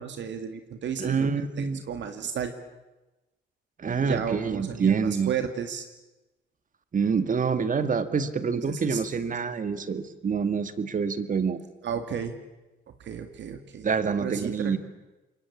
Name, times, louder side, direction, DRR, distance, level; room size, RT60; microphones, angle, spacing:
voice 1, 0.0-1.3 1.6-2.5 4.0-5.8 8.7-9.0 11.8-12.3 13.0-14.8, right 7 dB, 65° right, 7 dB, 2.1 m, -33 dB
voice 2, 1.0-1.8 3.8-5.4 6.9-11.6 13.8-14.8, right 5 dB, 40° right, 11 dB, 2.1 m, -26 dB
27.0 x 22.5 x 8.6 m, 1.0 s
cardioid pair, 90°, 20 cm